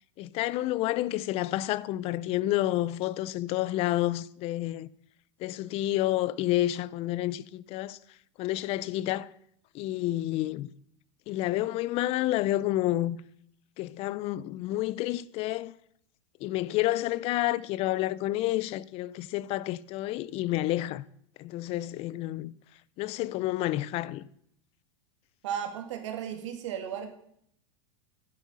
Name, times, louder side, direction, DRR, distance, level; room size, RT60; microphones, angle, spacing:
voice 1, 0.2-4.9 5.4-8.0 8.4-9.3 9.7-10.7 11.3-13.2 13.8-15.7 16.4-21.1 21.4-22.5 23.0-24.2, left 15 dB, 40° left, 0.5 m, -29 dB
voice 2, 25.4-27.1, right 9 dB, 75° right, 2.3 m, -35 dB
9.7 x 8.0 x 5.5 m
supercardioid pair, 130°, 16 cm